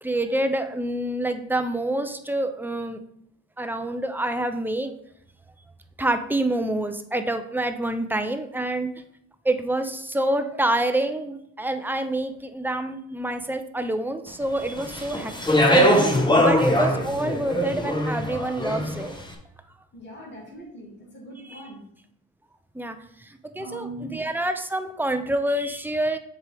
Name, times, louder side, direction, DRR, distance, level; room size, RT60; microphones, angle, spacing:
voice 1, 0.0-3.0 3.6-4.9 6.0-8.9 9.4-19.1 21.4-21.6 22.7-26.2, right 1 dB, 5° right, 8 dB, 0.5 m, -27 dB
Speech, 14.8-19.1, equal, 10° left, 0.9 m, -21 dB
voice 2, 19.9-21.8 23.6-24.2, right 1 dB, 30° left, -4 dB, 2.3 m, -40 dB
7.3 x 4.7 x 3.4 m, 0.71 s
cardioid pair, 110°, 37 cm